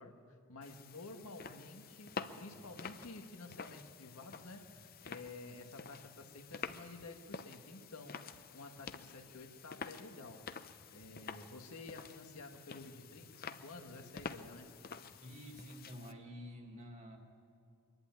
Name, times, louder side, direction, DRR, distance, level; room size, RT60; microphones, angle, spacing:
voice 1, 0.0-8.2 8.5-10.5 10.9-14.7, left 2 dB, 85° left, 4 dB, 1.8 m, -51 dB
sound 1, 0.6-16.1, left 5 dB, 40° left, 0.6 m, -49 dB
voice 2, 15.2-17.2, equal, 30° right, 2 dB, 2.2 m, -49 dB
24.0 x 11.5 x 9.5 m, 2.3 s
head